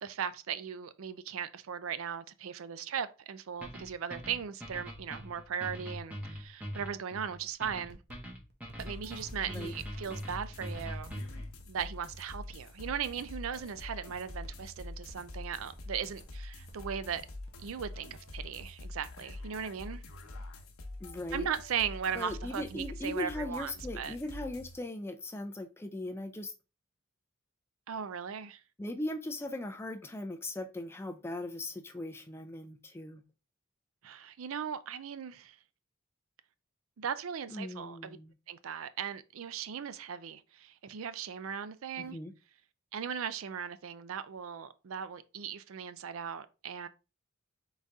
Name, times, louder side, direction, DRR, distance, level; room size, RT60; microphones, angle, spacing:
voice 1, 0.0-8.0 8.8-11.1 11.7-17.2 17.6-20.0 21.3-24.2 27.9-28.6 34.0-35.6 37.0-38.2 38.5-42.2 42.9-46.9, right 7 dB, 75° right, 0.4 m, -38 dB
sound 1, 3.6-11.5, equal, 5° right, 1.1 m, -43 dB
sound 2, 7.5-7.6 7.9-8.9 9.2-11.3 11.6-13.8 14.1-16.4 16.7-16.8 17.0-18.6, right 3 dB, 50° right, 1.0 m, -58 dB
sound 3, 8.8-24.8, left 2 dB, 80° left, 0.9 m, -45 dB
voice 2, 21.0-21.5 22.1-26.5 28.8-33.2 37.5-38.3 42.0-42.3, left 1 dB, 10° left, 0.4 m, -39 dB
4.0 x 3.9 x 3.5 m
head